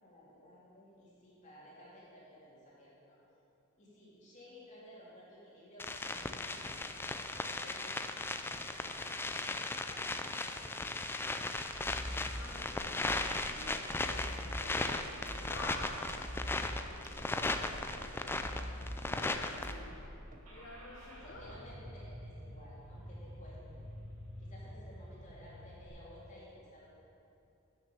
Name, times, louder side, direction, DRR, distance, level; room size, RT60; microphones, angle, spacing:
voice 1, 0.0-3.2 3.8-11.3 12.4-12.8 17.9-18.5 21.1-23.8 24.4-26.9, left 1 dB, 35° left, -7 dB, 2.6 m, -56 dB
sound 1, 5.8-19.7, left 2 dB, 10° left, 0.4 m, -37 dB
sound 2, 11.7-20.4, equal, 40° right, 1.2 m, -44 dB
voice 2, 12.3-16.3 18.9-20.0 20.5-21.7, left 2 dB, 55° left, -2 dB, 1.0 m, -49 dB
Car / Engine starting, 20.4-25.9, equal, 85° right, 2.0 m, -49 dB
9.7 x 6.5 x 7.0 m, 2.7 s
head